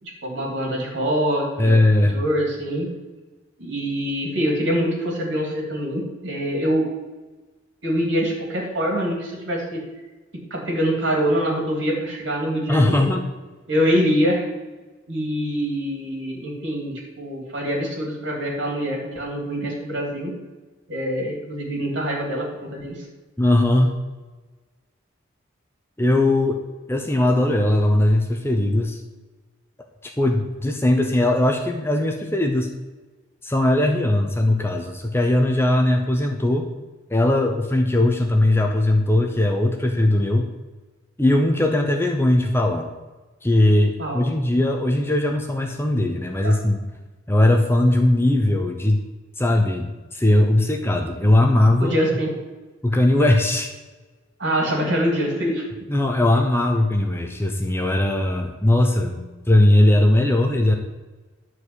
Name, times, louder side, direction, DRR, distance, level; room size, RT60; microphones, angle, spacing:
voice 1, 0.0-1.8 2.1-2.9 3.6-6.9 7.8-9.8 10.5-13.0 13.7-14.5 15.1-20.3 20.9-23.0 44.0-44.2 46.4-46.5 51.8-52.3 54.4-55.7, equal, 60° right, -1 dB, 3.2 m, -24 dB
voice 2, 1.6-2.2 12.7-13.3 23.4-23.9 26.0-26.6 26.9-29.0 30.0-32.7 33.4-36.7 37.1-40.5 41.2-42.9 43.4-46.8 47.3-49.0 49.4-51.9 52.8-53.7 55.9-59.2 59.5-60.8, left 1 dB, 10° left, 3 dB, 0.8 m, -19 dB
11.0 x 4.7 x 8.2 m, 1.2 s
head